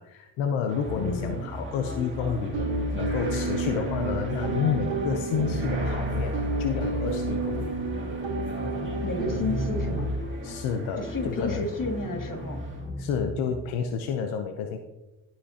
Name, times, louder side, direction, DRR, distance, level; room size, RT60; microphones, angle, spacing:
voice 1, 0.0-2.5 2.9-7.7 10.4-11.7 13.0-14.8, left 6 dB, 90° left, 6 dB, 0.8 m, -30 dB
sound 1, 0.7-12.9, right 2 dB, 25° right, 2.3 m, -41 dB
sound 2, 0.8-13.5, left 1 dB, 20° left, 3.8 m, -37 dB
voice 2, 1.0-1.4 9.0-10.1 11.0-12.6, left 2 dB, 45° left, 3 dB, 2.3 m, -31 dB
sound 3, 2.5-10.2, right 2 dB, 70° right, 1.8 m, -30 dB
18.0 x 6.0 x 2.8 m, 1.0 s
supercardioid pair, 55°, 45 cm